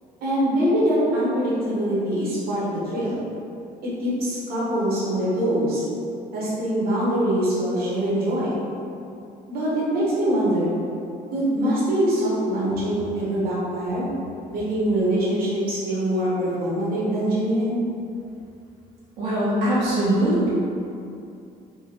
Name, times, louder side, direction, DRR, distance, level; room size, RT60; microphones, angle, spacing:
voice 1, 0.2-3.2 3.8-5.8 6.3-8.6 9.5-10.7 11.3-14.1 14.5-17.8, right 1 dB, 65° right, -8 dB, 1.1 m, -23 dB
voice 2, 19.2-20.5, right 1 dB, 85° right, -10 dB, 1.0 m, -21 dB
3.5 x 2.1 x 3.0 m, 2.6 s
cardioid pair, 110°, 17 cm